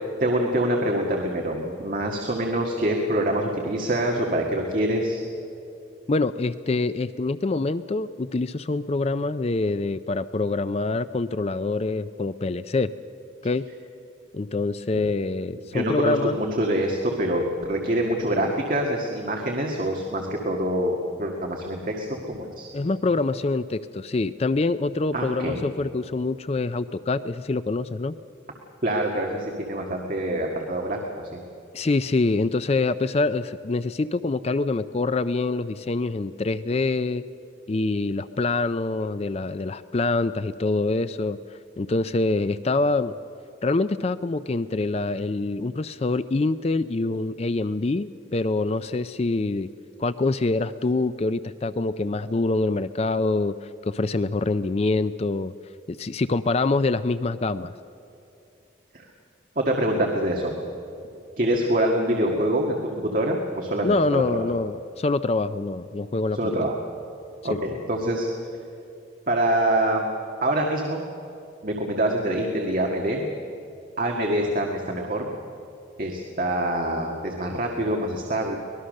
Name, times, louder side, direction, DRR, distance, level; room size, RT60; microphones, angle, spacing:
voice 1, 0.2-5.2 14.9-15.1 15.7-22.7 25.1-25.6 28.8-31.4 58.9-59.1 59.6-60.5 61.4-64.4 66.3-66.8 67.4-68.3 69.3-70.1 70.4-71.0 71.6-73.3 74.0-75.3 76.0-78.6, right 1 dB, 45° right, 0 dB, 1.8 m, -25 dB
voice 2, 6.1-12.9 13.4-13.6 14.3-16.4 22.7-28.2 31.7-37.2 37.7-41.4 41.8-43.1 43.6-49.7 50.0-55.5 55.9-57.7 63.8-66.4 67.5-67.6, left 3 dB, 30° left, 13 dB, 0.4 m, -25 dB
24.5 x 19.5 x 6.5 m, 2.7 s
head